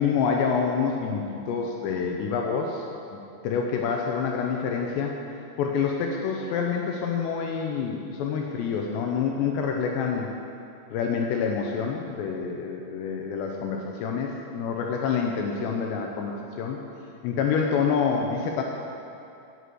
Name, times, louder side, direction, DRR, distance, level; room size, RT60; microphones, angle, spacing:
voice 1, 0.0-2.8 3.1-5.2 5.6-10.3 10.9-16.8 17.2-18.6, left 6 dB, 80° left, 1 dB, 2.7 m, -27 dB
8.1 x 8.0 x 7.7 m, 2.6 s
omnidirectional pair, 5.3 m